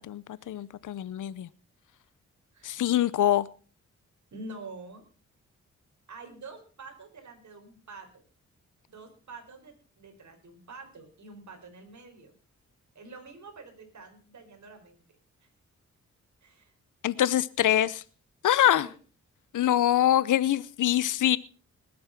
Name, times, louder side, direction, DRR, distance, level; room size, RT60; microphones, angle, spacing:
voice 1, 0.0-1.5 2.6-3.5 17.0-18.0 18.4-18.9 19.5-21.4, left 12 dB, 80° left, 0.7 m, -24 dB
voice 2, 4.3-5.0 6.1-8.2 8.9-12.3 12.9-15.0 16.4-16.7 18.6-19.0 19.6-19.7, right 3 dB, 70° right, 4.6 m, -47 dB
20.0 x 8.6 x 5.9 m
cardioid pair, 75°, 30 cm